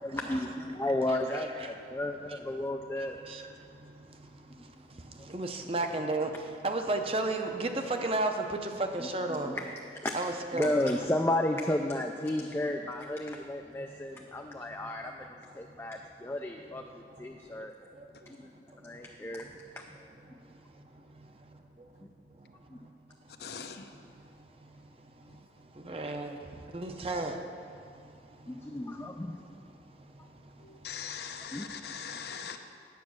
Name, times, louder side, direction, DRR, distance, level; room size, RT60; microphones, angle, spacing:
voice 1, 0.0-3.2 9.0-9.7 10.0-10.2 10.5-15.3 15.6-16.8 17.2-17.7 18.3-18.5 18.8-19.4 19.8-19.9 22.7-22.8 28.5-29.4 31.5-31.7, left 1 dB, 15° left, 2 dB, 0.3 m, -33 dB
voice 2, 5.3-6.3 6.6-8.3 8.9-9.5 10.1-10.9 25.9-26.3 26.7-27.4, right 2 dB, 30° right, 5 dB, 0.6 m, -31 dB
voice 3, 23.4-23.9 30.6-32.6, left 7 dB, 60° left, 6 dB, 0.6 m, -41 dB
9.4 x 7.5 x 6.2 m, 2.4 s
head